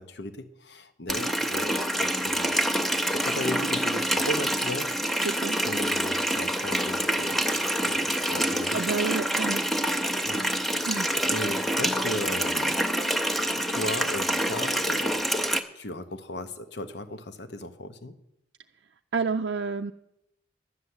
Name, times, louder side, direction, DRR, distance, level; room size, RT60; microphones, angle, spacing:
voice 1, 0.0-2.6 3.1-5.3 5.6-8.9 10.2-10.5 10.9-12.8 13.6-15.3 15.7-18.1, left 1 dB, 65° left, 10 dB, 0.9 m, -37 dB
Water tap faucet, 1.1-15.6, right 1 dB, ahead, 0.6 m, -26 dB
voice 2, 5.2-5.6 8.7-9.6 10.9-11.1 19.1-19.9, right 4 dB, 65° right, 4 dB, 0.4 m, -29 dB
11.5 x 6.9 x 9.5 m, 0.84 s
head